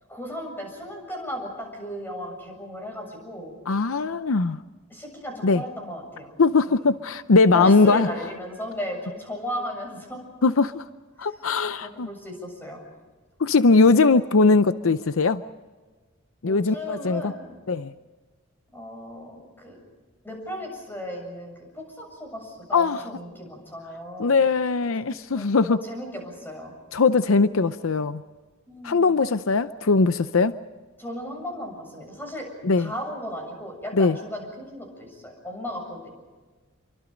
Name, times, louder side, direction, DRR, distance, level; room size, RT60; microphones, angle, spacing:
voice 1, 0.1-3.5 4.9-6.3 6.6-6.9 7.5-10.2 11.2-11.3 11.8-12.8 16.4-17.6 18.7-19.8 20.2-24.4 25.3-26.7 28.7-29.2 31.0-32.5 32.8-36.1, equal, 10° left, 2 dB, 7.3 m, -36 dB
voice 2, 3.7-4.6 5.4-5.6 6.4-8.1 10.4-10.8 11.2-12.1 13.4-15.4 16.4-17.3 17.7-17.9 22.7-23.0 24.2-25.8 26.9-28.2 28.8-30.6 32.6-32.9 34.0-34.2, left 4 dB, 70° left, 12 dB, 0.6 m, -20 dB
28.5 x 24.0 x 5.2 m, 1.3 s
head